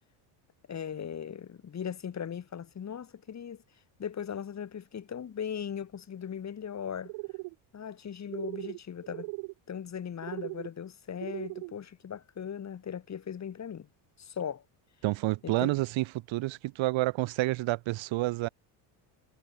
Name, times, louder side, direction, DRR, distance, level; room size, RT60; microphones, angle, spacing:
voice 1, 0.7-3.6 4.0-7.1 7.7-9.3 9.7-13.9 14.2-14.6 15.4-15.7, left 8 dB, 35° left, 2.2 m, -38 dB
sound 1, 7.0-7.5 8.3-8.8 9.0-9.5 10.2-10.7 11.2-11.7, right 26 dB, 85° right, 2.4 m, -38 dB
voice 2, 15.0-18.5, right 19 dB, 65° right, 1.6 m, -29 dB
cardioid pair, 115°, 49 cm